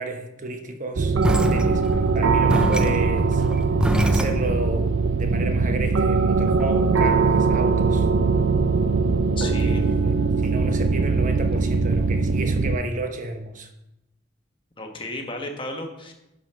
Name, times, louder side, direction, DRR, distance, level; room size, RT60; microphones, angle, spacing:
voice 1, 0.0-3.4 4.0-8.1 9.4-10.1 10.4-13.7, right 1 dB, 40° right, 1.0 m, -32 dB
sound 1, 1.0-12.8, right 4 dB, 70° right, 0.5 m, -21 dB
sound 2, 1.2-4.7, equal, 5° right, 0.5 m, -25 dB
voice 2, 9.4-9.8 14.8-16.1, left 1 dB, 25° left, 1.2 m, -33 dB
12.0 x 5.1 x 5.5 m
head